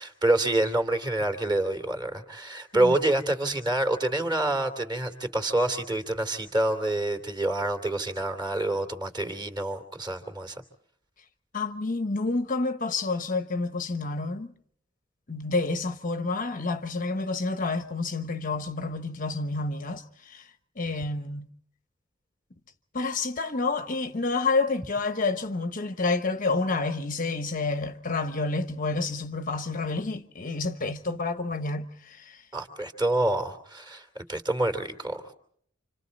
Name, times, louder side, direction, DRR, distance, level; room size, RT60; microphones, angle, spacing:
voice 1, 0.0-10.6 32.5-35.3, right 1 dB, 20° right, 3.0 m, -27 dB
voice 2, 11.5-14.5 15.3-20.5 20.8-21.5 22.9-32.4, left 3 dB, 40° left, 1.0 m, -29 dB
29.5 x 26.5 x 4.2 m
head